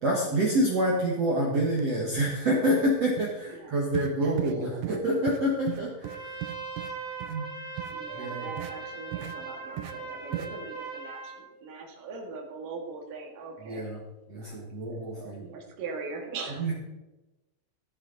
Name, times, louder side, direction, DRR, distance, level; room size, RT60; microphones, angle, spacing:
voice 1, 0.0-6.3 7.3-7.5 8.1-8.5 13.6-14.0 14.3-15.5 16.6-16.7, right 1 dB, 70° right, -3 dB, 1.5 m, -27 dB
sound 1, 1.7-1.8 2.2-2.4 2.7-2.9 3.2-3.3 3.9-4.1 4.4-4.6 4.8-5.0 5.3-5.4 5.7-6.9 7.2-7.4 7.8-7.9 8.6-8.7 9.1-9.4 9.8-9.9 10.3-10.5, right 15 dB, 85° right, 2.6 m, -36 dB
voice 2, 4.2-5.0 7.9-13.9 14.3-16.7, right 4 dB, 55° right, 1 dB, 3.0 m, -41 dB
Trumpet, 6.0-11.4, right 4 dB, 35° right, 1.4 m, -39 dB
15.0 x 10.0 x 4.0 m, 1.1 s
omnidirectional pair, 5.8 m